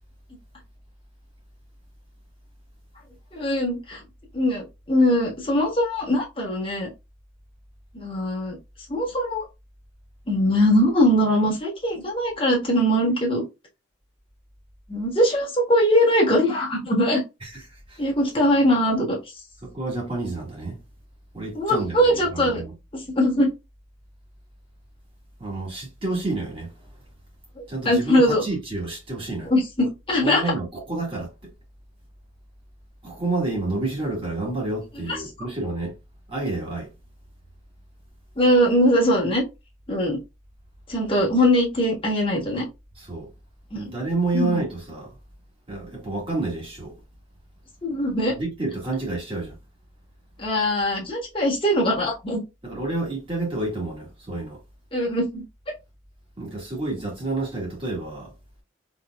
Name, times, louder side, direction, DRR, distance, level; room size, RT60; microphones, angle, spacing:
voice 1, 3.3-4.0 4.3-6.9 7.9-8.6 8.9-9.4 10.3-13.4 14.9-17.2 18.0-19.2 21.5-22.6 22.9-23.5 27.6-28.4 29.4-30.4 35.1-35.5 38.4-39.4 39.9-40.2 40.9-42.7 43.7-43.9 44.3-44.6 47.8-48.3 50.4-52.4 54.9-55.4, equal, 25° left, 1.4 m, -21 dB
voice 2, 17.4-18.0 19.6-20.8 21.3-22.7 25.4-26.7 27.7-29.5 30.2-31.3 33.0-36.0 36.3-36.9 43.0-43.3 43.7-45.2 45.7-47.0 48.3-49.6 52.6-54.6 56.4-58.3, right 2 dB, 25° right, 1.6 m, -29 dB
4.1 x 3.3 x 2.3 m
head